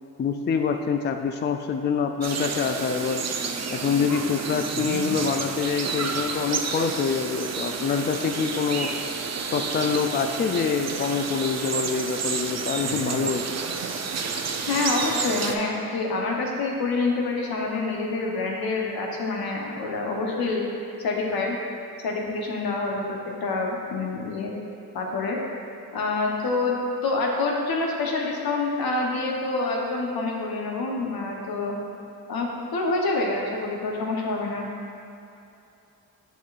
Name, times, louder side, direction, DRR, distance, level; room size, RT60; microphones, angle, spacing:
voice 1, 0.2-3.3 3.7-8.9 9.5-13.4, left 6 dB, 30° left, 6 dB, 0.4 m, -26 dB
sound 1, 2.2-15.5, right 5 dB, 45° right, 0.6 m, -30 dB
voice 2, 14.6-20.6 21.0-21.6 22.0-24.6 24.9-25.4 25.9-26.7 27.0-31.7 32.3-34.7, left 3 dB, 70° left, -1 dB, 1.0 m, -27 dB
7.0 x 6.0 x 2.5 m, 2.8 s
supercardioid pair, 50°, 38 cm